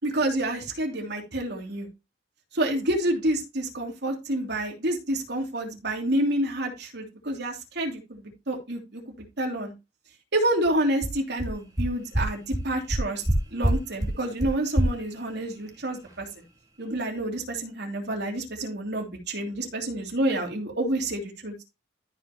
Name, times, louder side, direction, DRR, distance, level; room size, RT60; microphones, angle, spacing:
voice 1, 0.0-1.9 2.5-9.0 9.4-9.7 10.3-13.2 13.5-16.4 16.8-21.5, right 1 dB, 65° right, 1 dB, 3.0 m, -28 dB
sound 1, 10.7-10.8 11.0-11.1 11.4-11.5 11.8-11.9 12.1-12.2 12.5-12.6 12.9-13.3 13.6-13.7 14.0-14.1 14.4-14.5 14.8-14.9, right 1 dB, 20° right, 2.3 m, -23 dB
13.5 x 5.6 x 3.0 m, 0.25 s
head